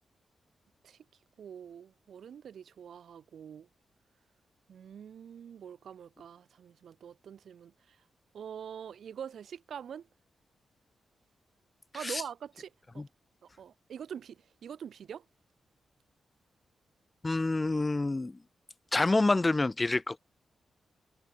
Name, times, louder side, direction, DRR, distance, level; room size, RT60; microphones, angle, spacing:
voice 1, 1.4-3.7 4.7-8.0 8.3-10.1 11.9-13.0 13.4-15.2, right 8 dB, 75° right, 7.1 m, -45 dB
voice 2, 17.2-18.4 18.9-20.2, left 2 dB, 25° left, 3.7 m, -27 dB
cardioid pair, 60°, 0 cm